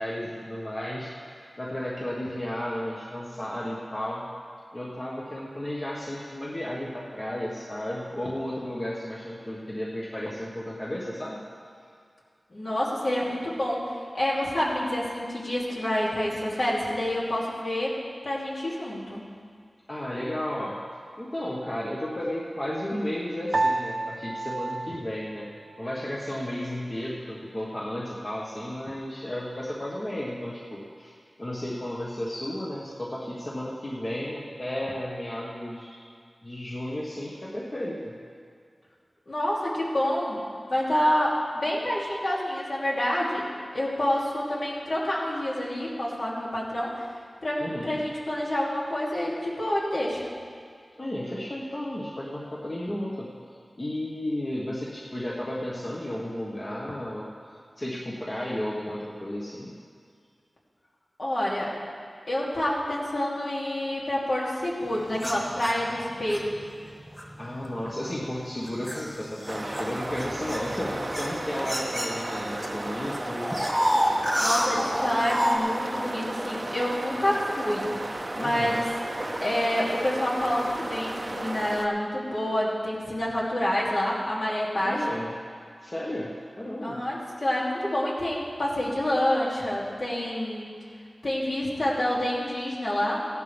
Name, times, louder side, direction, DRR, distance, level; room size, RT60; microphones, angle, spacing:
voice 1, 0.0-4.3 4.7-11.4 19.9-20.7 21.2-31.1 31.4-36.0 36.4-38.2 47.6-48.0 51.0-53.3 53.8-59.7 67.4-73.5 78.4-78.8 84.8-85.3 85.8-87.0, left 1 dB, 35° left, -5 dB, 1.5 m, -33 dB
voice 2, 12.5-18.0 18.2-19.2 39.3-40.4 40.7-43.5 43.7-47.1 47.4-50.3 61.2-61.8 62.3-66.6 74.4-78.8 79.4-85.1 86.8-90.7 91.2-93.3, left 1 dB, 60° left, -6 dB, 2.8 m, -28 dB
Piano, 23.5-26.1, right 2 dB, 65° right, 0.8 m, -30 dB
sound 1, 65.2-66.4 67.2-67.4 68.0-72.7 72.9-75.6, equal, 5° left, 1.9 m, -29 dB
sound 2, 69.5-81.9, right 1 dB, 35° right, 0.7 m, -34 dB
16.5 x 11.5 x 3.5 m, 2.2 s
wide cardioid pair, 70°, 0 cm